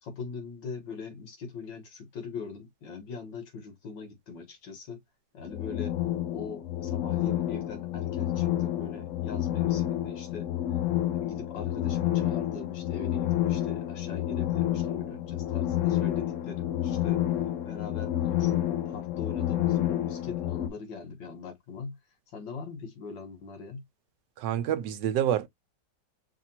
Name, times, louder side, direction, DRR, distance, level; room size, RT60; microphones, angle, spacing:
voice 1, 0.0-5.0 5.3-5.9 6.3-10.5 11.2-17.2 17.7-22.0 22.3-23.8, left 5 dB, 85° left, 1.9 m, -42 dB
sound 1, 5.4-20.7, left 12 dB, 65° left, 0.8 m, -29 dB
voice 2, 24.4-25.5, right 10 dB, 85° right, 1.3 m, -27 dB
5.7 x 2.6 x 2.8 m
omnidirectional pair, 1.9 m